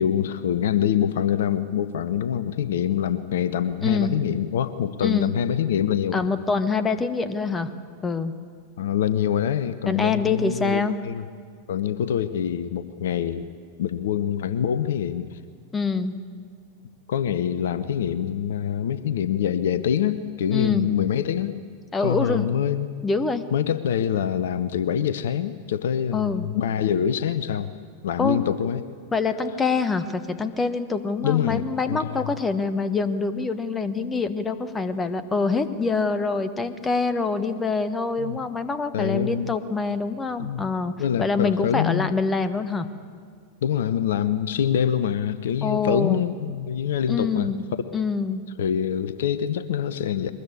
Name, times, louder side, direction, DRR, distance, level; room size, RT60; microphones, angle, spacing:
voice 1, 0.0-6.3 8.8-11.2 11.7-13.5 13.8-15.4 17.1-21.6 22.0-22.9 23.5-27.7 28.0-28.8 31.2-31.6 31.9-32.4 38.2-38.4 38.9-39.5 40.4-40.6 41.0-42.1 43.6-47.9 48.6-50.3, left 9 dB, 60° left, 13 dB, 0.8 m, -25 dB
voice 2, 3.8-4.2 5.0-5.3 6.1-7.7 8.0-8.3 9.9-11.0 15.7-16.2 20.5-20.9 21.9-22.5 23.0-23.4 26.1-26.5 28.2-28.4 29.1-42.9 45.6-46.2 47.1-47.6 47.9-48.4, left 4 dB, 15° left, 11 dB, 1.3 m, -25 dB
22.5 x 20.5 x 8.7 m, 2.1 s
figure-of-eight pair, 90°, 0 cm